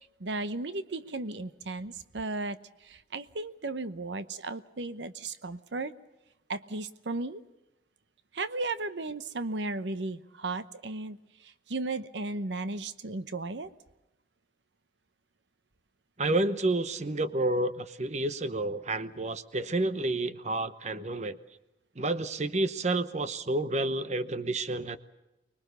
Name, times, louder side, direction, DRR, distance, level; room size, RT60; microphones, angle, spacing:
voice 1, 0.2-5.9 6.5-7.4 8.3-13.7, right 2 dB, 85° right, 12 dB, 0.9 m, -35 dB
voice 2, 16.2-21.4 22.0-25.0, right 2 dB, 40° right, 12 dB, 0.9 m, -30 dB
25.0 x 21.5 x 6.8 m, 0.96 s
head